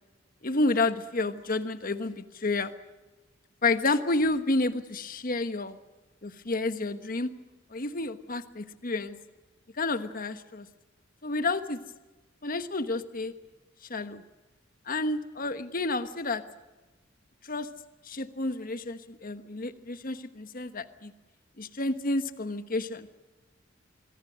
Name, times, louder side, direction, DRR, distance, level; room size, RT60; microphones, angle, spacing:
voice 1, 0.4-2.7 3.6-5.8 6.2-7.3 7.7-9.2 9.8-10.7 11.2-11.8 12.4-13.3 13.9-14.2 14.9-16.4 17.4-17.7 18.0-21.1 21.6-23.1, left 2 dB, 45° left, 10 dB, 1.2 m, -30 dB
26.5 x 23.0 x 6.3 m, 1.2 s
head